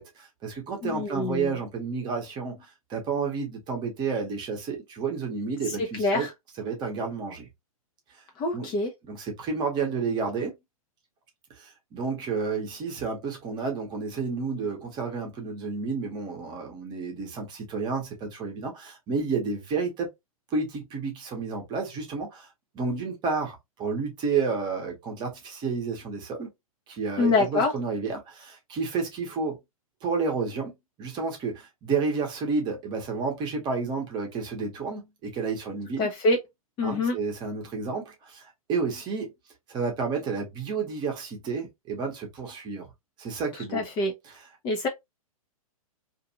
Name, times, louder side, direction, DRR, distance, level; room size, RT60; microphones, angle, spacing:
voice 1, 0.0-6.3 6.6-7.5 8.1-8.2 8.5-8.7 9.0-10.5 11.5-20.1 20.5-22.5 22.7-26.5 26.9-29.6 30.0-30.7 31.0-36.1 36.8-39.3 39.7-42.9 43.2-43.8, right 4 dB, 25° right, 1.0 m, -31 dB
voice 2, 0.8-1.6 5.8-6.3 8.4-8.9 27.2-27.7 36.0-36.4 36.8-37.2 43.7-44.1 44.6-44.9, left 3 dB, 25° left, 0.7 m, -25 dB
2.6 x 2.5 x 2.8 m
figure-of-eight pair, 110°, 19 cm